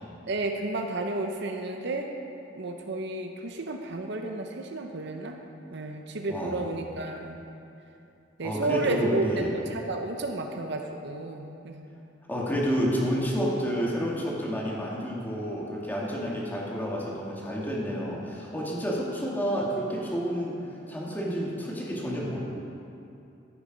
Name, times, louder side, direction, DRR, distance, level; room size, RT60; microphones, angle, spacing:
voice 1, 0.3-2.1 2.6-5.4 5.7-7.4 8.4-9.4 9.7-11.9, right 2 dB, 65° right, 4 dB, 0.8 m, -32 dB
voice 2, 6.3-6.6 8.4-9.5 12.3-20.6 20.9-22.4, equal, 10° left, -5 dB, 2.0 m, -30 dB
14.0 x 6.9 x 5.2 m, 2.7 s
head